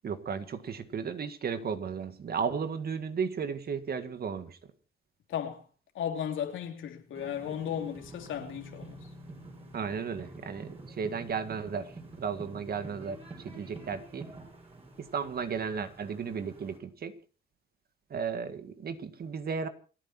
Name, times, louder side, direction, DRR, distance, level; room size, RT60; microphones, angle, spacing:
voice 1, 0.0-4.6 9.7-11.9 12.2-14.3 15.0-17.1 18.1-19.7, right 6 dB, 50° right, 1.8 m, -34 dB
voice 2, 5.3-5.6 5.9-9.1, left 9 dB, 80° left, 2.9 m, -35 dB
sound 1, 7.1-16.8, right 2 dB, 30° right, 6.3 m, -48 dB
28.5 x 9.6 x 4.4 m
cardioid pair, 90°, 20 cm